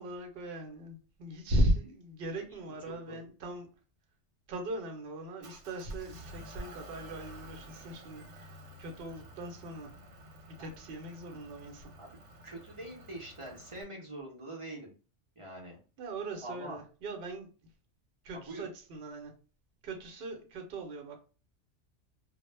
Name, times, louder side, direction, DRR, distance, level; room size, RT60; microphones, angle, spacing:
voice 1, 0.0-3.7 4.5-8.5 8.8-9.9 10.5-11.9 16.0-17.5 18.2-19.3 19.8-21.2, right 1 dB, 60° right, 3 dB, 0.8 m, -37 dB
voice 2, 2.9-3.2 10.6-10.7 12.0-12.2 12.4-14.9 15.4-15.8 16.4-16.8 18.3-18.6, right 1 dB, 40° right, -2 dB, 0.5 m, -44 dB
Motor vehicle (road) / Engine, 5.4-13.8, equal, 85° right, 0.9 m, -51 dB
2.1 x 2.0 x 3.1 m, 0.36 s
omnidirectional pair, 1.2 m